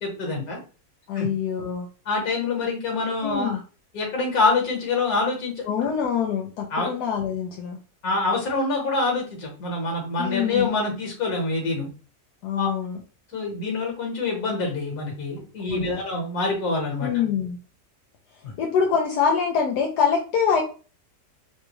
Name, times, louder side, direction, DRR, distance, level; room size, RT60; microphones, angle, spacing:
voice 1, 0.0-0.6 1.1-1.3 2.1-3.6 3.9-5.9 6.7-6.9 8.0-11.9 12.6-12.7 13.3-17.1 18.4-18.5, left 3 dB, 65° left, -1 dB, 1.9 m, -26 dB
voice 2, 1.1-1.9 3.2-3.6 5.7-7.8 10.2-10.7 12.4-13.0 15.7-16.0 17.0-17.6 18.6-20.6, left 7 dB, 85° left, 0 dB, 1.2 m, -24 dB
4.0 x 2.3 x 2.9 m, 0.35 s
omnidirectional pair, 1.7 m